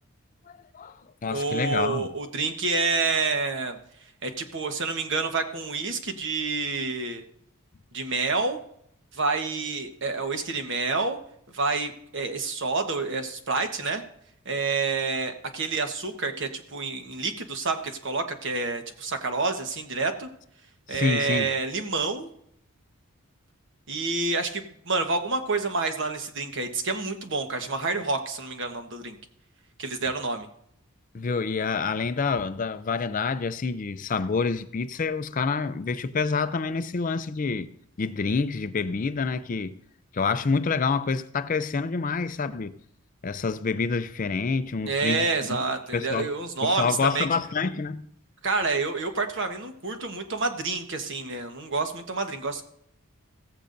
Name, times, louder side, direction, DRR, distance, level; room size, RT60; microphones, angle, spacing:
voice 1, 0.5-2.1 20.9-21.5 31.1-37.7 38.0-39.7 40.1-42.8 43.2-45.3 45.9-46.3 46.6-48.1, left 4 dB, 35° left, 0.4 m, -27 dB
voice 2, 1.2-3.8 4.2-7.2 7.9-8.6 9.1-11.2 11.5-14.0 14.4-20.3 20.9-22.3 23.9-29.2 29.8-30.5 44.8-47.3 48.4-52.6, right 3 dB, 55° right, 1.2 m, -28 dB
16.0 x 15.0 x 2.6 m
head